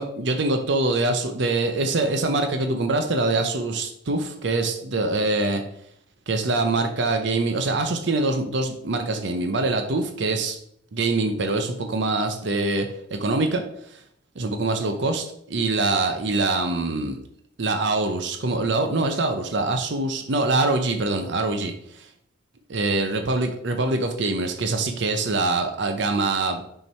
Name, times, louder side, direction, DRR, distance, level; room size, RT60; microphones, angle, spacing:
voice 1, 0.0-5.6 6.3-10.6 10.9-14.0 14.4-17.2 17.6-22.1 22.7-26.6, right 2 dB, 65° right, 6 dB, 0.7 m, -24 dB
6.4 x 4.6 x 4.3 m, 0.69 s
head